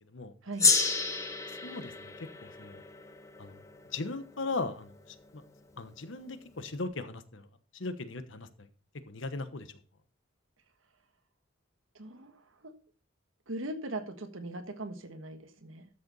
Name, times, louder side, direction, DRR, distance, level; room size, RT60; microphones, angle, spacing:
Gong, 0.6-5.3, left 4 dB, 15° left, 1.1 m, -31 dB
voice 1, 1.5-2.1 2.4-2.8 3.4-3.6 3.9-5.4 5.8-7.5 7.7-8.7 9.1-9.7, left 3 dB, 75° left, 11 dB, 1.1 m, -38 dB
voice 2, 11.9-12.7 13.5-15.9, right 2 dB, 85° right, 8 dB, 1.4 m, -40 dB
13.0 x 6.8 x 4.0 m, 0.39 s
head